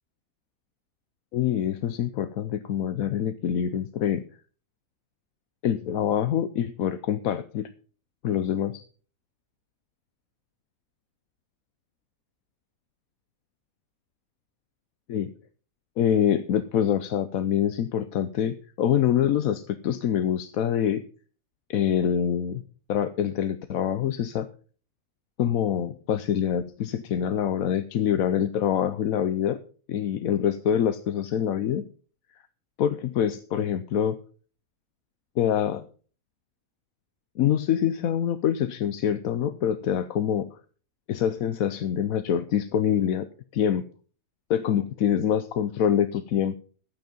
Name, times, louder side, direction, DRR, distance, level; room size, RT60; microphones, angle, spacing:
voice 1, 1.3-4.2 5.6-7.7 8.2-8.8 15.1-15.3 16.0-21.0 21.7-22.6 22.9-24.5 25.4-29.6 29.9-31.8 32.8-34.2 35.4-35.8 37.4-40.5 41.1-43.3 43.5-43.9 44.5-46.6, left 9 dB, 80° left, 11 dB, 1.1 m, -25 dB
11.5 x 9.3 x 5.3 m, 0.41 s
omnidirectional pair, 1.5 m